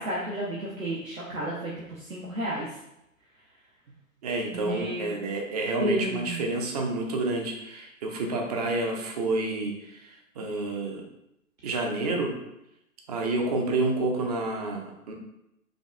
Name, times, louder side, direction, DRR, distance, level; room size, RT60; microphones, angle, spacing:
voice 1, 0.0-2.7 4.5-5.3 5.8-6.5, right 1 dB, 75° right, -5 dB, 0.9 m, -32 dB
voice 2, 4.2-11.0 11.6-12.4 13.1-15.1, right 2 dB, 30° right, 1 dB, 0.5 m, -29 dB
5.0 x 2.2 x 2.5 m, 0.83 s
figure-of-eight pair, 115°, 41 cm